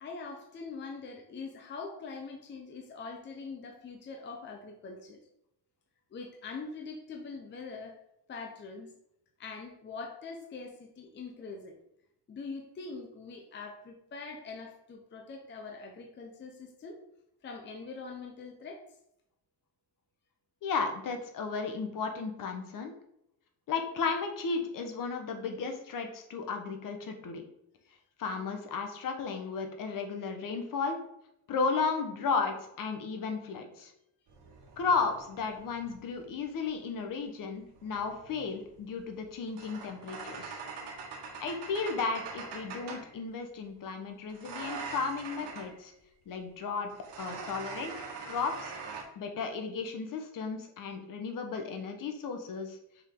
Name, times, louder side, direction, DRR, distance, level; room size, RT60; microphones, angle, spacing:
voice 1, 0.0-5.2 6.1-7.9 8.3-8.9 9.4-11.7 12.3-17.0 17.4-18.8 49.0-49.2, left 4 dB, 30° left, 2 dB, 0.7 m, -43 dB
voice 2, 20.6-22.9 23.7-27.4 28.2-31.0 31.5-33.9 34.8-40.6 41.4-45.9 46.3-46.9 47.2-48.7 49.2-52.8, left 4 dB, 55° left, 5 dB, 1.1 m, -34 dB
sound 1, 34.3-36.4 37.6-43.2 44.3-45.8 46.9-49.0, right 4 dB, 80° right, 1.5 m, -43 dB
6.5 x 4.9 x 3.7 m, 0.79 s
cardioid pair, 180°, 40 cm